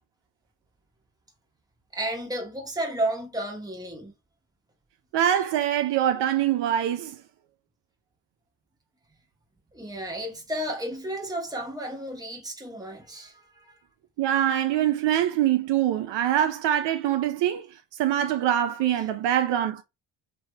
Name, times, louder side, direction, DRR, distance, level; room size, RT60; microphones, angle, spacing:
voice 1, 1.9-4.1 9.7-13.8, right 1 dB, 10° right, 1.0 m, -32 dB
voice 2, 5.1-7.2 14.2-17.7 18.0-19.8, right 11 dB, 65° right, 0.6 m, -24 dB
3.2 x 3.0 x 2.3 m
cardioid pair, 110°, 46 cm